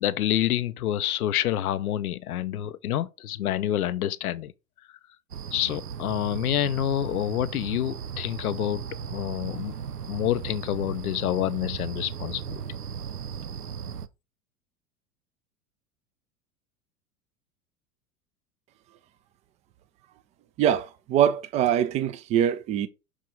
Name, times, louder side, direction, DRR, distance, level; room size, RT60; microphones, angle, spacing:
voice 1, 0.0-4.5 5.5-9.7 10.1-12.6, left 11 dB, 70° left, 0.6 m, -28 dB
sound 1, 5.3-14.1, right 7 dB, 90° right, 0.6 m, -36 dB
voice 2, 20.6-22.9, right 10 dB, 15° right, 0.3 m, -23 dB
6.0 x 4.8 x 3.7 m
figure-of-eight pair, 85°, 45 cm